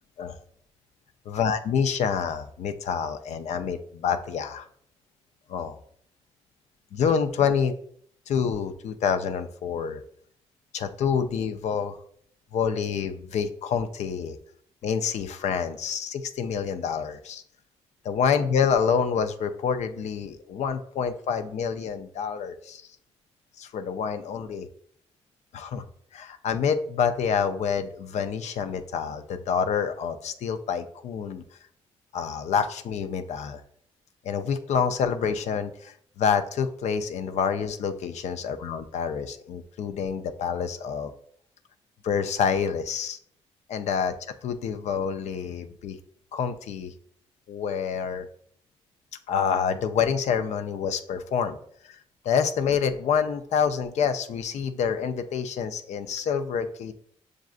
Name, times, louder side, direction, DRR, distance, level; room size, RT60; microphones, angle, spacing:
voice 1, 1.3-4.7 5.5-5.8 6.9-7.7 8.3-10.0 10.7-12.0 12.5-14.4 14.8-17.4 18.0-22.8 23.6-24.7 25.5-25.8 26.1-31.4 32.1-33.6 34.2-41.1 42.0-43.2 43.7-44.1 44.4-46.0 46.3-46.9 47.5-48.3 49.3-51.6 51.8-52.0 52.2-56.9, left 7 dB, 70° left, 9 dB, 0.4 m, -27 dB
6.4 x 2.4 x 2.4 m, 0.63 s
supercardioid pair, 60°, 12 cm